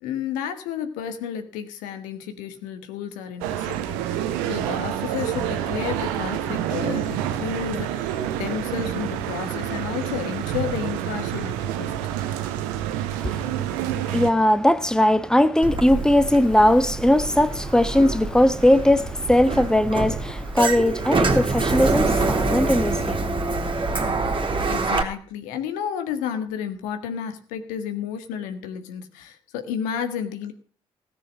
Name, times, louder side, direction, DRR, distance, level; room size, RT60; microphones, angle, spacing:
voice 1, 0.0-11.9 24.7-30.5, left 8 dB, 75° left, 1.6 m, -32 dB
sound 1, 3.4-14.3, right 11 dB, 75° right, 1.2 m, -28 dB
voice 2, 14.0-23.2 23.5-23.6, left 1 dB, 5° left, 1.4 m, -19 dB
Sliding door, 15.6-25.0, right 3 dB, 35° right, 2.9 m, -25 dB
17.0 x 7.0 x 7.5 m
figure-of-eight pair, 45°, 14 cm